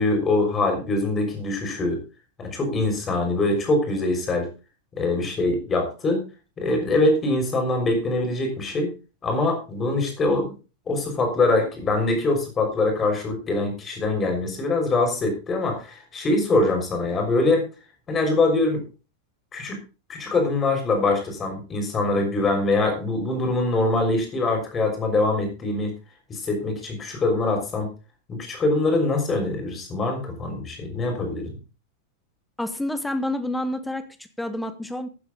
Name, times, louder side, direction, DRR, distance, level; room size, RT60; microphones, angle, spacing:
voice 1, 0.0-2.0 2.4-4.5 5.0-6.2 6.6-8.9 9.2-10.5 10.9-17.7 18.1-18.8 19.5-19.8 20.1-25.9 26.3-27.9 28.3-31.5, left 2 dB, 20° left, 4 dB, 6.0 m, -23 dB
voice 2, 32.6-35.1, left 1 dB, 5° left, 10 dB, 1.8 m, -29 dB
15.5 x 9.4 x 4.0 m, 0.32 s
figure-of-eight pair, 90°, 0 cm